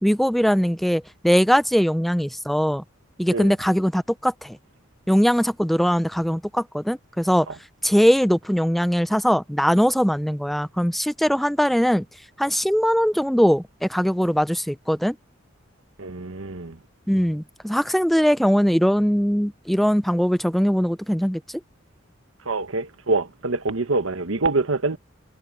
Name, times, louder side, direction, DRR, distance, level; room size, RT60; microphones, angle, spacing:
voice 1, 0.0-2.8 3.2-4.6 5.1-7.5 7.8-12.0 12.4-15.2 17.1-21.6, equal, ahead, 0.5 m, -21 dB
voice 2, 16.0-16.8 22.4-25.0, right 3 dB, 80° right, 1.3 m, -25 dB
head